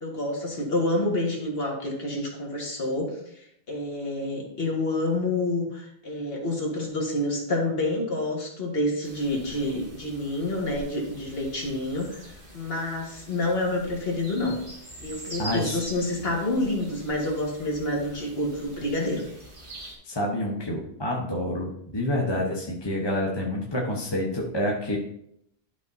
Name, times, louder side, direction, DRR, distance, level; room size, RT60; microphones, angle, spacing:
voice 1, 0.0-3.1 3.4-14.6 15.0-19.2, left 1 dB, 60° left, -1 dB, 1.9 m, -28 dB
sound 1, 9.0-20.0, right 1 dB, 50° right, 2.1 m, -44 dB
voice 2, 15.4-15.8 20.0-25.0, left 1 dB, 25° left, -2 dB, 1.0 m, -28 dB
12.0 x 5.1 x 2.7 m, 0.75 s
omnidirectional pair, 1.1 m